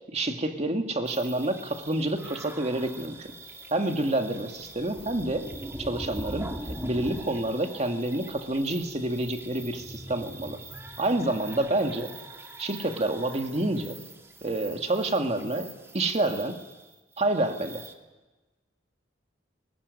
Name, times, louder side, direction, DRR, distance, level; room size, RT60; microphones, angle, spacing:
voice 1, 0.1-3.2 3.7-5.5 5.9-10.6 11.0-12.1 12.6-14.0 14.4-16.6 17.2-17.8, right 1 dB, 35° right, 5 dB, 2.0 m, -28 dB
sound 1, 1.1-17.9, right 1 dB, 15° right, 1.7 m, -42 dB
21.0 x 20.5 x 9.6 m, 1.2 s
head